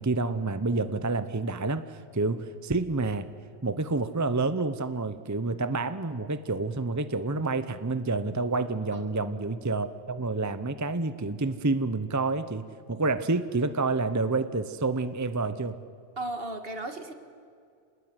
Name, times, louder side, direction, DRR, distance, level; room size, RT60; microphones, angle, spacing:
voice 1, 0.0-3.3 3.6-15.8, right 3 dB, 20° right, 11 dB, 0.8 m, -28 dB
voice 2, 16.2-17.1, right 2 dB, 60° right, 7 dB, 2.1 m, -35 dB
27.0 x 19.5 x 9.6 m, 2.4 s
omnidirectional pair, 1.1 m